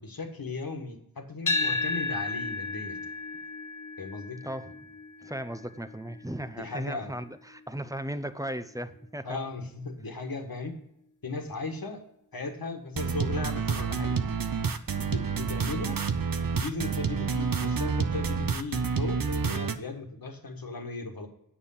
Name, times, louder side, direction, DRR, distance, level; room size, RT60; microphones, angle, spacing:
voice 1, 0.0-3.0 4.0-4.4 6.6-7.1 9.2-10.8 11.2-12.0 12.3-14.2 15.0-16.0 16.5-21.3, left 3 dB, 75° left, 4 dB, 1.5 m, -36 dB
sound 1, 1.5-9.6, left 3 dB, 55° left, 1.0 m, -35 dB
voice 2, 4.4-4.8 5.2-9.4, right 1 dB, 10° right, 11 dB, 0.7 m, -36 dB
sound 2, 13.0-19.8, right 5 dB, 70° right, 0.7 m, -29 dB
8.9 x 6.7 x 5.6 m, 0.78 s
wide cardioid pair, 50°, 35 cm